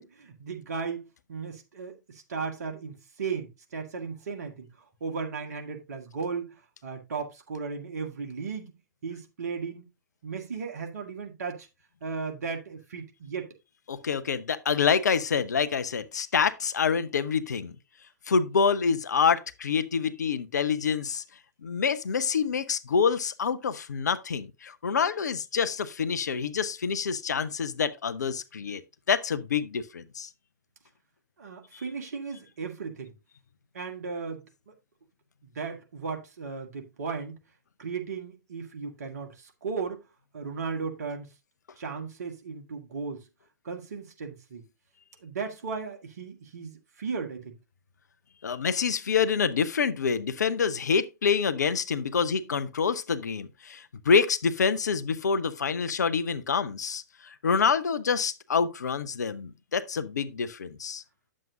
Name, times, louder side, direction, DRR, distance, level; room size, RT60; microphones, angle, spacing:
voice 1, 0.0-4.7 5.0-8.7 9.0-9.9 10.2-11.7 12.0-13.5 31.4-33.1 33.7-34.7 35.5-37.4 37.8-40.0 40.3-41.3 41.8-43.2 43.6-44.6 45.2-47.6, right 5 dB, 60° right, 1.8 m, -36 dB
voice 2, 13.9-17.7 18.3-21.2 21.6-28.8 29.1-30.3 48.4-61.0, left 6 dB, 65° left, 0.7 m, -27 dB
9.1 x 7.4 x 2.7 m
figure-of-eight pair, 110°, 10 cm